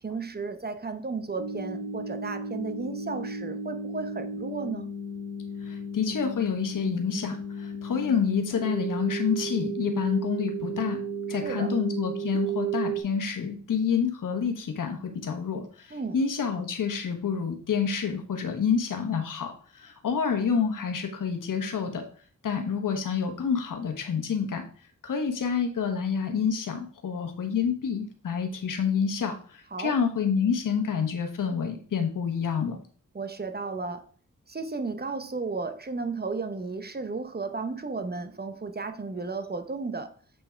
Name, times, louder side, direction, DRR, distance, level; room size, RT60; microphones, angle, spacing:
voice 1, 0.0-4.9 11.3-11.8 15.9-16.2 29.7-30.0 33.1-34.1 34.5-40.2, right 4 dB, 30° right, 0.8 m, -34 dB
sound 1, 1.4-13.0, right 3 dB, 65° right, 1.3 m, -34 dB
voice 2, 5.6-11.0 11.3-22.0 22.4-24.6 25.0-32.8, left 6 dB, 90° left, 1.2 m, -28 dB
7.7 x 3.5 x 4.4 m
cardioid pair, 60°, 31 cm